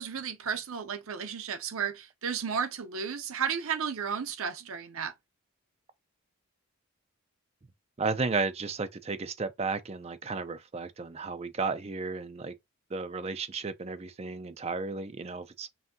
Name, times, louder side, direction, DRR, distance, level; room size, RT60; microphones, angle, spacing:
voice 1, 0.0-5.1, right 7 dB, 70° right, 0.7 m, -33 dB
voice 2, 8.0-12.5 12.9-15.7, right 4 dB, 30° right, 0.4 m, -33 dB
5.6 x 2.7 x 2.7 m
head